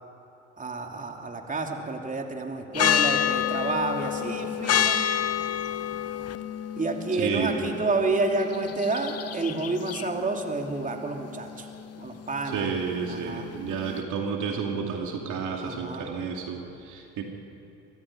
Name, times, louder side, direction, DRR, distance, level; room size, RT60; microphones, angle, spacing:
voice 1, 0.6-5.0 6.8-11.7 12.0-12.7 13.1-13.5 15.6-16.1, right 3 dB, 25° right, 2 dB, 3.0 m, -29 dB
sound 1, 2.7-14.0, left 9 dB, 45° left, 1.0 m, -29 dB
voice 2, 7.2-7.7 12.5-17.2, right 6 dB, 60° right, 2 dB, 2.5 m, -31 dB
23.5 x 14.5 x 10.0 m, 2.9 s
hypercardioid pair, 65°, 34 cm